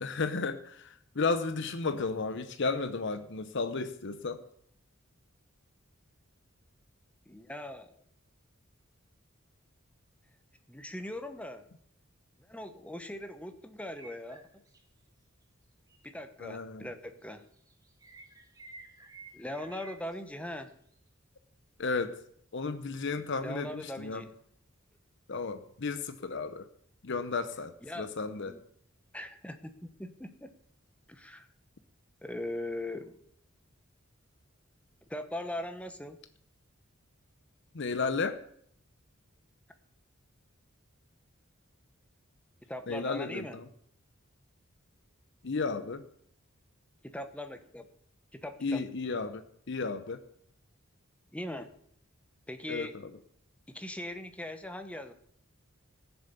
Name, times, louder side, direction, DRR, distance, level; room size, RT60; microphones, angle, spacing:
voice 1, 0.0-4.4 16.4-16.9 21.8-22.2 22.5-24.2 25.3-26.7 27.0-28.6 37.7-38.4 42.9-43.6 45.4-46.0 48.6-50.2 52.7-52.9, left 4 dB, 60° left, 10 dB, 0.8 m, -33 dB
voice 2, 7.3-7.9 10.7-11.7 12.4-14.5 16.0-17.4 19.3-20.8 23.4-24.3 27.8-28.6 29.1-30.5 31.1-31.5 32.2-33.2 35.1-36.2 42.7-43.6 47.0-47.9 48.3-48.8 51.3-51.7 52.5-53.0 53.7-55.1, left 1 dB, 5° left, 8 dB, 0.9 m, -40 dB
sound 1, 14.0-14.8 15.9-16.1 17.4-20.2 20.5-20.7, right 2 dB, 20° right, 1.7 m, -52 dB
15.5 x 7.1 x 6.9 m, 0.67 s
head